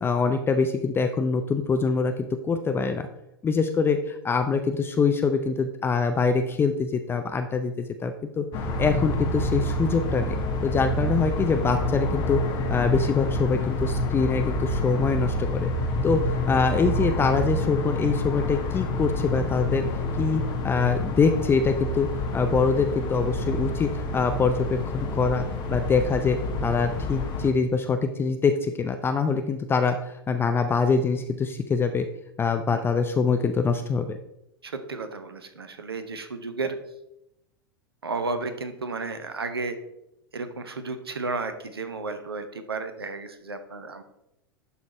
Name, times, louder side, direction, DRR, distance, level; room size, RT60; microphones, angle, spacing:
voice 1, 0.0-3.1 3.4-8.5 8.8-10.3 10.6-12.4 12.7-15.7 16.0-19.8 20.2-22.1 22.3-32.1 32.4-34.2, left 5 dB, 20° left, 7 dB, 0.5 m, -24 dB
sound 1, 8.5-27.5, left 1 dB, 35° left, 1.3 m, -28 dB
voice 2, 34.6-36.8 38.0-39.8 40.3-44.0, right 3 dB, 80° right, 9 dB, 0.9 m, -33 dB
11.0 x 4.1 x 4.3 m, 0.85 s
figure-of-eight pair, 90°, 13 cm